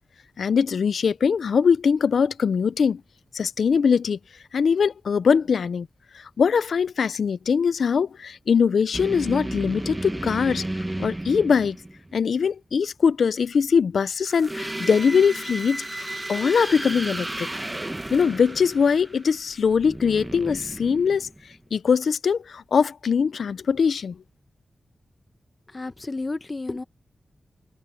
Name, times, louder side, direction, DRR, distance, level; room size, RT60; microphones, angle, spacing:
voice 1, 0.4-3.0 3.3-4.2 4.5-5.9 6.1-10.6 11.0-11.8 12.1-17.5 18.1-21.3 21.7-24.2, left 6 dB, 85° left, 0.5 m, -22 dB
sound 1, 8.9-12.2 14.3-21.6, right 1 dB, 20° right, 1.2 m, -33 dB
voice 2, 25.7-26.8, left 3 dB, 35° left, 0.9 m, -31 dB
cardioid pair, 65°, 0 cm